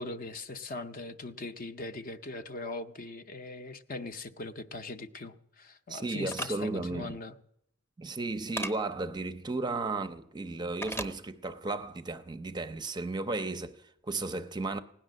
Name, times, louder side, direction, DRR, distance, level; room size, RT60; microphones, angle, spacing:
voice 1, 0.0-7.4, left 3 dB, 45° left, 0.7 m, -40 dB
voice 2, 5.9-7.2 8.0-14.8, right 3 dB, 20° right, 0.5 m, -34 dB
sound 1, 6.3-6.5 8.6-8.7 10.8-11.1, right 1 dB, 10° left, 0.8 m, -34 dB
17.0 x 10.5 x 6.4 m
head